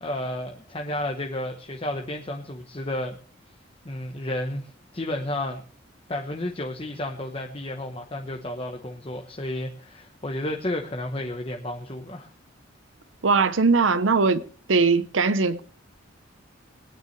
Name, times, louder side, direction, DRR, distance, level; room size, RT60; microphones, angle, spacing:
voice 1, 0.0-3.2 3.8-5.6 6.1-12.3, left 1 dB, 30° left, 1.0 m, -32 dB
voice 2, 13.2-14.4 14.7-15.6, right 4 dB, 90° right, 0.9 m, -20 dB
21.0 x 9.5 x 3.2 m
head